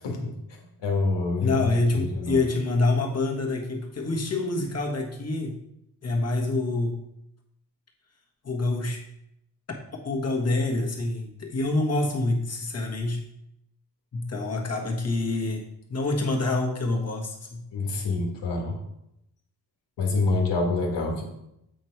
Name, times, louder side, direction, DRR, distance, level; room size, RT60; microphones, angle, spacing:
voice 1, 0.0-2.4 17.7-18.8 20.0-21.2, left 3 dB, 80° left, 2 dB, 1.7 m, -27 dB
voice 2, 1.4-5.6 6.0-7.0 8.4-9.0 9.9-13.2 14.1-17.7, left 2 dB, 35° left, 0 dB, 1.5 m, -26 dB
8.0 x 4.3 x 4.6 m, 0.82 s
cardioid pair, 110°, 42 cm